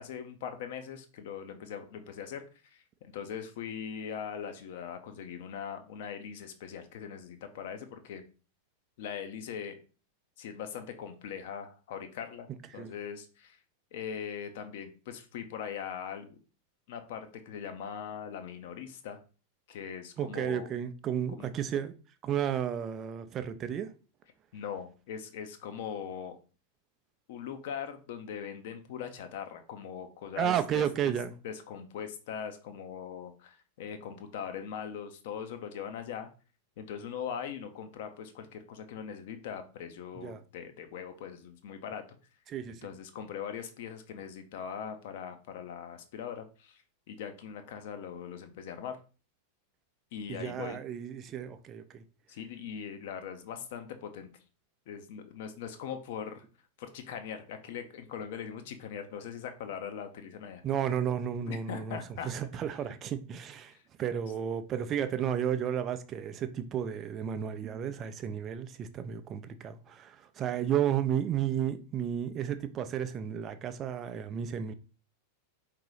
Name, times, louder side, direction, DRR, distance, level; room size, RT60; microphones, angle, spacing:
voice 1, 0.0-2.4 2.7-8.2 9.0-9.7 10.4-12.5 12.7-13.6 13.9-16.4 16.9-19.2 19.7-20.7 21.3-21.5 24.5-26.3 27.3-31.1 31.4-36.3 36.8-42.0 42.8-46.8 47.1-49.0 50.1-50.8 52.3-54.3 54.9-56.4 56.8-60.6 61.5-62.3 63.7-63.8, left 7 dB, 50° left, 0.8 m, -41 dB
voice 2, 20.2-21.9 22.2-23.9 30.4-31.3 40.1-40.4 42.5-42.8 50.3-52.0 60.6-62.0 62.2-63.7 64.0-74.7, right 9 dB, 30° right, 0.5 m, -32 dB
4.7 x 2.8 x 3.9 m
figure-of-eight pair, 90°, 0 cm